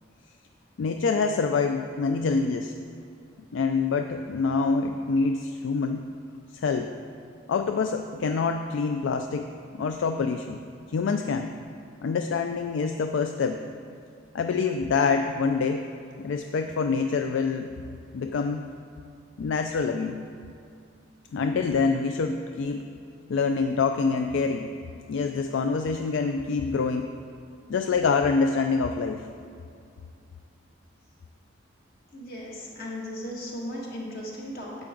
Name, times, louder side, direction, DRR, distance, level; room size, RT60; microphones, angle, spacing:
voice 1, 0.8-2.7 3.5-6.1 6.5-6.9 7.5-10.6 10.9-11.5 12.0-13.6 14.3-15.8 16.2-17.7 18.1-18.6 19.4-20.2 21.3-22.8 23.3-24.7 25.1-27.1 27.7-29.2, left 4 dB, 75° left, 6 dB, 0.3 m, -26 dB
voice 2, 32.1-34.8, left 1 dB, 50° left, -4 dB, 2.0 m, -36 dB
10.5 x 7.6 x 3.8 m, 2.5 s
head